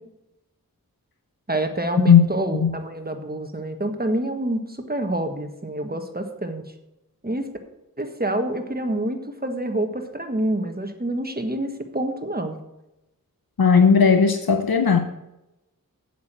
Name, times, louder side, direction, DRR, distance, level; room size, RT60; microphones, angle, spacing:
voice 1, 1.5-6.6 7.2-7.4 8.0-12.6, right 1 dB, 25° right, 6 dB, 1.4 m, -27 dB
voice 2, 13.6-15.0, left 6 dB, 85° left, 7 dB, 0.7 m, -15 dB
8.4 x 7.4 x 6.0 m, 0.91 s
wide cardioid pair, 40°, 35 cm